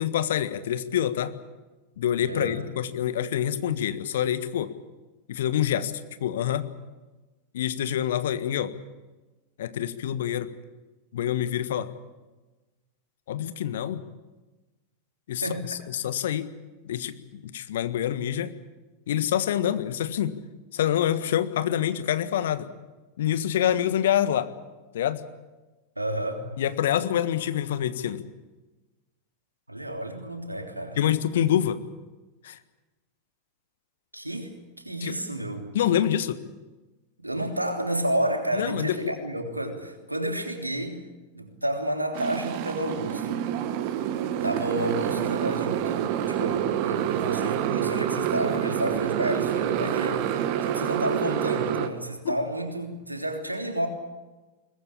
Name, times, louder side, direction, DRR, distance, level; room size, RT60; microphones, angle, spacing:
voice 1, 0.0-1.3 2.0-4.7 5.3-5.9 6.2-6.7 7.5-8.7 9.6-10.5 11.1-11.9 13.3-14.0 15.3-16.5 16.8-18.5 19.1-20.4 20.7-22.7 23.2-24.5 24.9-25.2 26.6-28.2 31.0-31.8 32.4-32.6 35.0-35.2 35.7-36.4 38.5-39.1 52.2-52.4, left 10 dB, 60° left, 12 dB, 1.5 m, -26 dB
voice 2, 2.2-2.7 15.4-15.8 26.0-26.4 29.7-31.0 34.1-34.5 34.8-35.7 37.2-41.0 41.3-43.5 44.4-50.3 50.6-53.9, right 1 dB, 85° right, 4 dB, 3.3 m, -30 dB
Motorcycle, 42.1-51.9, right 10 dB, 45° right, 1.8 m, -27 dB
22.5 x 20.5 x 8.7 m, 1.2 s
figure-of-eight pair, 90°, 0 cm